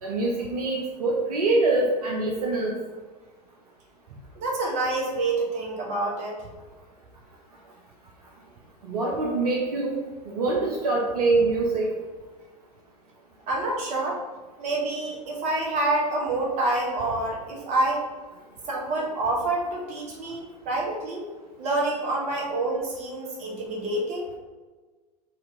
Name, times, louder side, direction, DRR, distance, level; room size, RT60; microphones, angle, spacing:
voice 1, 0.0-2.8 8.8-11.9, right 3 dB, 65° right, -2 dB, 0.7 m, -24 dB
voice 2, 4.3-6.4 13.5-14.2 14.6-18.0 18.7-21.3 21.6-24.3, right 2 dB, 35° right, -2 dB, 1.2 m, -27 dB
4.3 x 2.8 x 3.6 m, 1.3 s
figure-of-eight pair, 90°, 21 cm